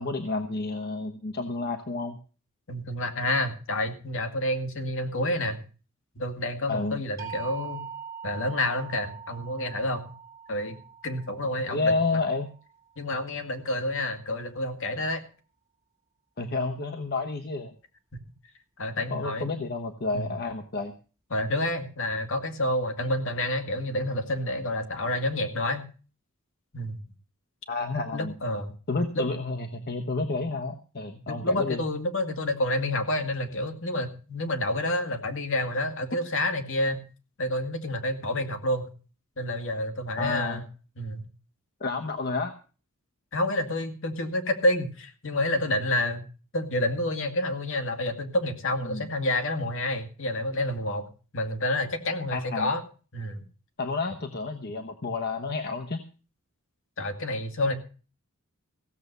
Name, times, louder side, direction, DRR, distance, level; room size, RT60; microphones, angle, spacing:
voice 1, 0.0-2.2 6.7-7.0 11.7-12.5 16.4-17.7 19.0-20.9 27.7-28.3 28.9-31.8 40.2-40.6 41.8-42.5 48.8-49.1 52.3-52.7 53.8-56.0, left 3 dB, 50° left, 6 dB, 1.1 m, -30 dB
voice 2, 2.7-5.6 6.2-7.9 8.2-10.1 10.5-10.8 11.0-12.0 13.0-15.2 18.8-19.5 20.1-20.3 21.3-25.8 26.7-27.0 28.1-28.7 29.1-29.2 31.3-37.0 37.4-38.9 39.4-40.6 41.0-41.3 43.3-46.2 46.5-52.8 53.1-53.4 57.0-57.7, left 1 dB, 65° left, 7 dB, 2.2 m, -29 dB
sound 1, 7.2-13.2, right 7 dB, 15° right, 3.2 m, -43 dB
16.0 x 7.7 x 6.8 m, 0.37 s
head